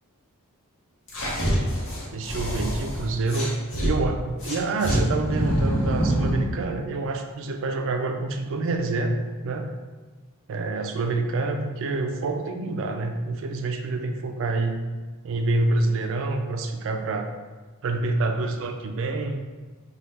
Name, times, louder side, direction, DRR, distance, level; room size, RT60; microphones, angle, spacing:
sound 1, 1.1-3.9 4.4-6.5, equal, 60° left, 0.9 m, -25 dB
voice 1, 2.1-3.5 3.8-9.7 10.5-14.8 15.2-17.3 17.8-19.4, right 3 dB, 60° right, 5 dB, 0.4 m, -27 dB
4.2 x 2.3 x 3.3 m, 1.3 s
head